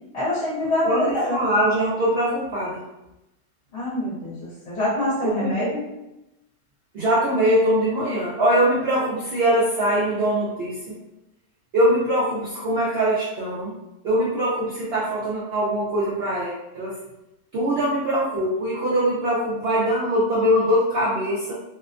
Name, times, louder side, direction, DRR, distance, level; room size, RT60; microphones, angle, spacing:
voice 1, 0.1-1.4 3.7-5.8, left 1 dB, 50° left, -8 dB, 1.0 m, -25 dB
voice 2, 0.8-2.8 5.4-5.7 6.9-10.9 11.7-13.7 14.0-17.0 17.5-21.5, equal, 85° right, -6 dB, 0.5 m, -22 dB
2.7 x 2.2 x 2.4 m, 0.93 s
omnidirectional pair, 1.6 m